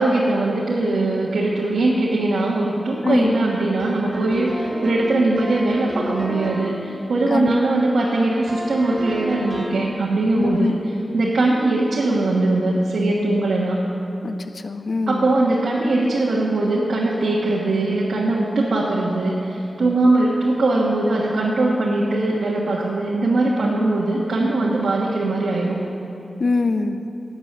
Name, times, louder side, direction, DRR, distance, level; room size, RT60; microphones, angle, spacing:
voice 1, 0.0-10.7 11.1-13.8 15.1-25.8, right 2 dB, 90° right, -5 dB, 1.3 m, -21 dB
voice 2, 3.0-3.3 7.3-7.6 10.3-10.8 14.2-14.4 14.6-15.3 26.4-27.0, left 3 dB, 65° left, 9 dB, 0.6 m, -22 dB
sound 1, 3.8-6.8 8.5-9.9, equal, 35° right, 3.4 m, -31 dB
12.5 x 8.9 x 6.6 m, 2.9 s
wide cardioid pair, 80°, 0 cm